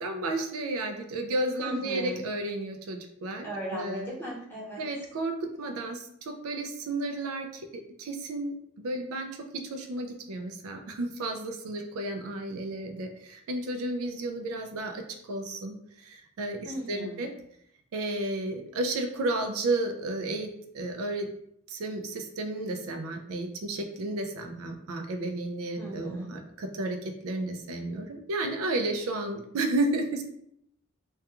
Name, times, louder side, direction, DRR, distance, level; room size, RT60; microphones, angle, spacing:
voice 1, 0.0-4.2 4.8-16.6 16.9-17.3 17.9-21.3 21.7-30.2, right 2 dB, 80° right, 5 dB, 0.4 m, -32 dB
voice 2, 1.6-2.2 3.4-4.8 16.6-17.2 25.8-26.3, right 1 dB, 10° left, -6 dB, 0.7 m, -37 dB
2.3 x 2.2 x 2.8 m, 0.72 s
head